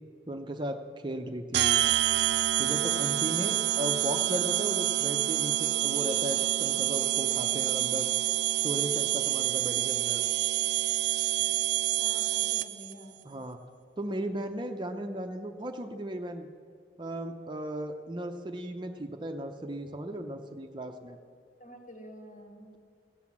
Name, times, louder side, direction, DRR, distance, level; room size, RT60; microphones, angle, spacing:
voice 1, 0.3-1.8 2.6-8.1 8.6-10.2 13.2-13.6 14.0-16.5 17.0-21.2, right 1 dB, 25° right, 5 dB, 0.6 m, -36 dB
sound 1, 1.5-12.9, right 14 dB, 70° right, 0.4 m, -27 dB
voice 2, 12.0-13.2 21.6-22.7, equal, 45° left, 2 dB, 2.3 m, -48 dB
16.5 x 7.9 x 7.2 m, 2.2 s
head